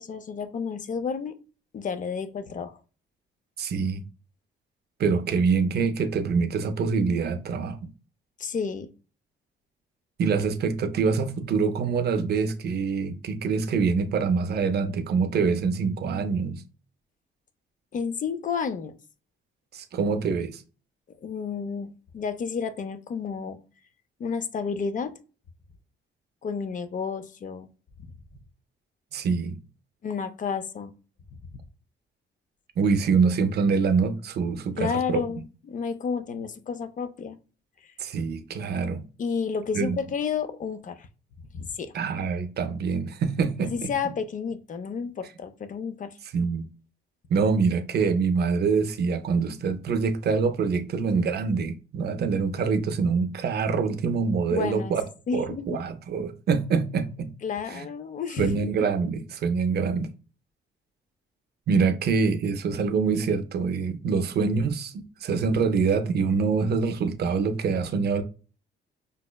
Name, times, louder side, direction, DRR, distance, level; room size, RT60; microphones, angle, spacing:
voice 1, 0.0-1.3 1.7-2.8 8.4-8.9 17.9-18.9 21.2-23.6 24.2-25.1 26.4-27.7 30.0-30.9 34.8-37.4 39.2-41.1 41.5-41.9 43.6-46.1 54.5-55.0 55.3-55.8 57.4-58.7, left 6 dB, 40° left, 0.5 m, -31 dB
voice 2, 3.6-4.0 5.0-7.8 10.2-16.6 19.7-20.6 29.1-29.6 32.8-35.2 38.0-39.0 39.7-40.0 41.9-43.9 46.3-46.7 47.3-55.0 55.3-57.3 57.7-57.9 58.4-60.1 61.7-68.2, right 5 dB, 55° right, 0.5 m, -25 dB
5.2 x 2.0 x 2.2 m
cardioid pair, 90°, 20 cm